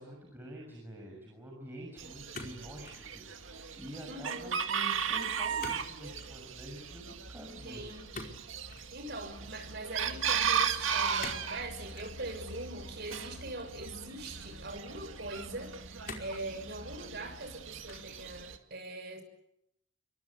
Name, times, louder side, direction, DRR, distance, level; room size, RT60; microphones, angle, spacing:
voice 1, 0.0-7.9, equal, 10° right, -1 dB, 6.4 m, -47 dB
Chicken rooster, 2.0-18.6, right 7 dB, 75° right, 2.3 m, -36 dB
sound 1, 2.3-3.1 3.4-3.9 5.6-5.9 6.1-6.4 8.1-8.9 11.2-11.5 11.9-12.2 13.1-13.9 14.6-14.7 16.0-16.4 17.0-17.5 17.9-18.2, left 3 dB, 45° left, 5.1 m, -45 dB
voice 2, 4.1-4.6 7.6-8.2 8.9-19.2, right 2 dB, 55° right, 6 dB, 6.4 m, -42 dB
28.5 x 24.0 x 8.5 m, 0.79 s
head